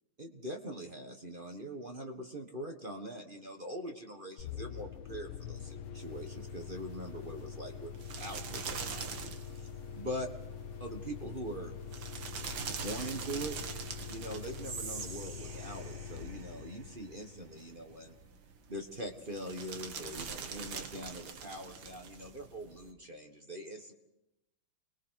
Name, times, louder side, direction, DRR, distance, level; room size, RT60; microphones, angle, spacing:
voice 1, 0.2-9.7 9.9-10.3 10.8-11.7 12.6-13.6 14.1-18.1 18.7-23.9, right 1 dB, 25° right, 3 dB, 1.4 m, -43 dB
sound 1, 4.4-17.9, left 7 dB, 85° left, 2.0 m, -45 dB
sound 2, 6.0-22.9, right 6 dB, 65° right, 2.0 m, -45 dB
Whispering, 14.6-17.8, right 5 dB, 45° right, 1.5 m, -46 dB
29.5 x 21.0 x 4.7 m, 0.89 s
omnidirectional pair, 2.4 m